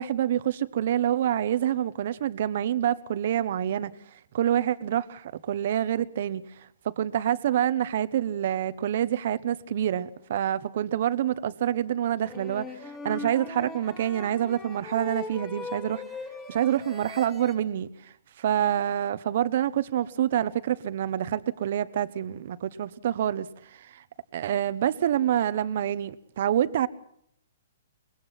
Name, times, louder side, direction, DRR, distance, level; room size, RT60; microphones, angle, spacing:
voice 1, 0.0-3.9 4.3-16.0 16.5-24.0 24.3-26.9, right 10 dB, 55° right, 1.1 m, -27 dB
sound 1, 12.2-17.5, left 3 dB, 15° left, 2.7 m, -40 dB
24.5 x 21.0 x 5.9 m
hypercardioid pair, 150°, 0 cm